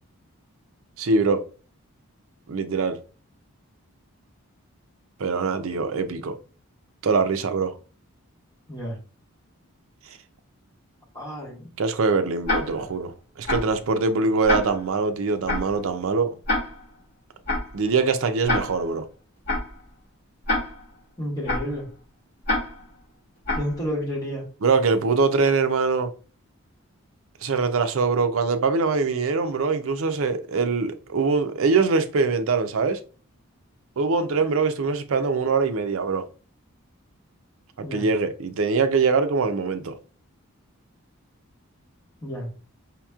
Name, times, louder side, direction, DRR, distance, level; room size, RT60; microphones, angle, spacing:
voice 1, 1.0-1.4 2.5-3.0 5.2-6.4 7.0-7.7 11.8-13.1 13.4-16.3 17.7-19.0 24.6-26.1 27.4-33.0 34.0-36.2 37.8-39.9, right 4 dB, 70° right, 0.5 m, -23 dB
voice 2, 11.1-11.7 21.2-21.8 23.5-24.5 37.8-38.1 42.2-42.5, equal, 15° left, 1.4 m, -30 dB
Tick-tock, 12.4-12.9 13.5-13.8 14.5-14.9 15.5-15.8 16.5-16.9 17.5-17.8 18.5-18.9 19.5-19.8 20.5-20.9 21.5-21.8 22.4-22.9 23.4-23.8, left 2 dB, 45° left, 2.1 m, -27 dB
5.1 x 2.9 x 2.3 m
head